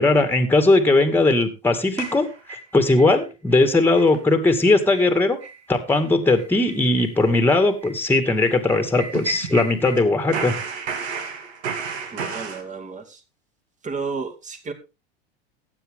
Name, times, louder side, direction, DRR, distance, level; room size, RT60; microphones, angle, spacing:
voice 1, 0.0-5.4 5.7-10.5, left 2 dB, 5° left, 2.1 m, -19 dB
sound 1, 2.0-3.1 3.5-3.6 4.0-4.2 4.5-4.6 4.9-5.1 5.4-5.6 5.9-6.0 6.4-10.0 10.3-12.6, right 5 dB, 85° right, 2.8 m, -33 dB
voice 2, 12.1-13.2 13.8-14.7, right 4 dB, 25° right, 2.5 m, -32 dB
15.0 x 9.3 x 3.7 m
hypercardioid pair, 105°, 32 cm